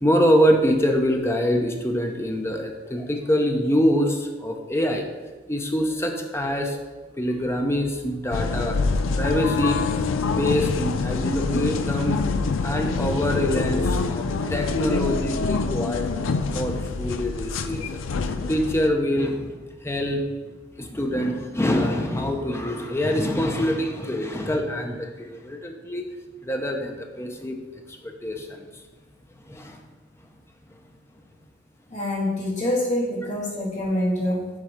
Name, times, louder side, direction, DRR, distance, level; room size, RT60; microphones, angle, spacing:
voice 1, 0.0-5.1 5.5-6.8 7.2-8.8 9.2-16.1 16.5-26.0 26.4-27.6 27.9-28.8 29.5-29.8, equal, 15° left, 3 dB, 0.7 m, -25 dB
sound 1, 8.3-18.9, left 4 dB, 90° left, 0.5 m, -26 dB
voice 2, 31.9-34.5, left 1 dB, 40° left, -6 dB, 2.3 m, -25 dB
7.4 x 3.8 x 5.1 m, 1.3 s
head